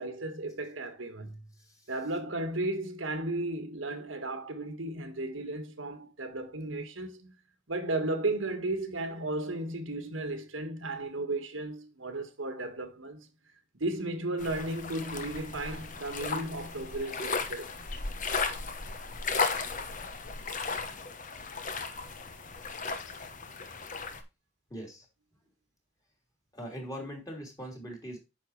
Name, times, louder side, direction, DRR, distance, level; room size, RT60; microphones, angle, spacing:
voice 1, 0.0-1.5 1.9-7.3 7.7-13.3 13.7-17.7, right 2 dB, 90° right, 1.7 m, -34 dB
voice 2, 1.6-1.9 24.7-25.1 26.5-28.2, equal, 20° left, 3.0 m, -41 dB
sound 1, 14.4-24.2, left 4 dB, 45° left, 1.0 m, -35 dB
9.1 x 6.3 x 3.2 m
head